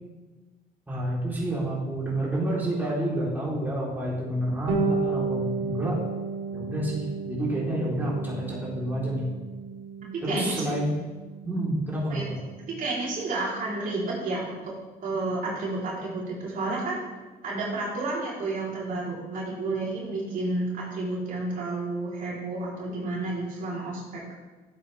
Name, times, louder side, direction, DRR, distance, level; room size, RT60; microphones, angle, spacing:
voice 1, 0.9-6.0 6.5-9.2 10.2-10.9 11.4-12.4, right 1 dB, 10° right, -6 dB, 3.8 m, -29 dB
Bass guitar, 4.7-14.3, right 4 dB, 75° right, 3.2 m, -34 dB
voice 2, 10.0-10.8 12.1-12.3 12.7-14.7 15.0-17.0 17.4-24.2, right 2 dB, 55° right, -6 dB, 3.7 m, -31 dB
13.0 x 8.2 x 3.5 m, 1.3 s
cardioid pair, 110°, 17 cm